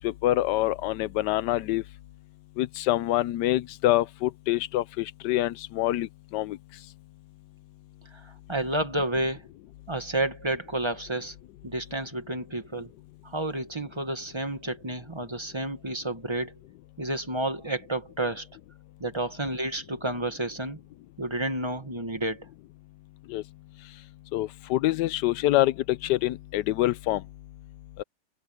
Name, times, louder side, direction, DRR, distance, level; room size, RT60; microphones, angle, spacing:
voice 1, 0.0-1.8 2.6-6.1 6.3-6.6 23.3-23.4 24.3-27.2, left 15 dB, 75° left, 1.1 m, -26 dB
voice 2, 8.1-9.5 9.9-11.3 11.6-12.9 13.2-16.5 17.0-18.5 19.0-20.8 21.2-22.4, right 1 dB, 15° right, 1.5 m, -30 dB
omnidirectional pair, 2.0 m